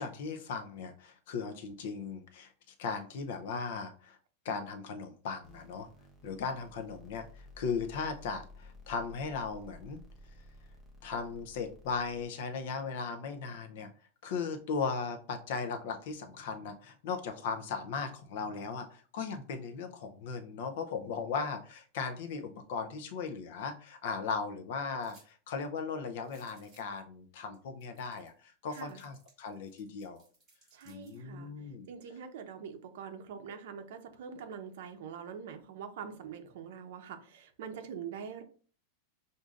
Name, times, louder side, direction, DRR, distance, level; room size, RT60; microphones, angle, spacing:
voice 1, 0.0-4.2 4.4-5.9 6.2-10.0 11.0-13.9 14.2-30.2 30.9-31.9, left 5 dB, 55° left, 7 dB, 0.5 m, -37 dB
sound 1, 5.4-12.3, left 1 dB, 5° left, 0.7 m, -54 dB
sound 2, 25.0-25.3 25.6-25.7 26.2-27.0 27.5-27.6 27.8-28.4 28.7-31.2, right 2 dB, 20° right, 2.0 m, -64 dB
voice 2, 28.7-29.0 30.7-31.5 31.9-38.4, right 7 dB, 60° right, 6 dB, 0.7 m, -44 dB
6.2 x 2.6 x 2.4 m, 0.42 s
supercardioid pair, 175°, 0 cm